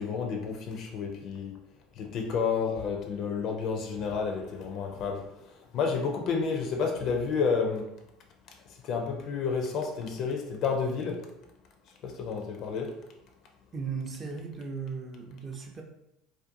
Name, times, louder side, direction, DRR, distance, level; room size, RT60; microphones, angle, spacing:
voice 1, 0.0-1.5 2.0-5.3 5.7-7.9 8.8-11.3 12.0-12.9, left 5 dB, 55° left, 3 dB, 0.4 m, -30 dB
voice 2, 13.7-15.8, right 5 dB, 30° right, 3 dB, 0.5 m, -36 dB
2.5 x 2.2 x 2.6 m, 0.84 s
hypercardioid pair, 70°, 0 cm